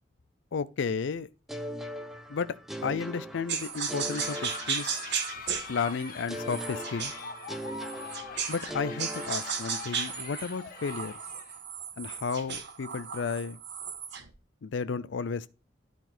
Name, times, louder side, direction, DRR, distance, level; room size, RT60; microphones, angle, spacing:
voice 1, 0.5-1.3 2.3-2.6 2.8-5.0 5.7-7.1 8.5-11.1 12.0-13.6 14.6-15.5, left 5 dB, 70° left, 0.5 m, -33 dB
sound 1, 1.5-5.4 6.3-10.1, equal, ahead, 0.8 m, -40 dB
sound 2, 3.5-8.7 9.0-14.3, right 7 dB, 65° right, 1.3 m, -35 dB
sound 3, 3.7-11.6, left 4 dB, 50° left, 1.5 m, -43 dB
11.5 x 4.1 x 4.3 m
head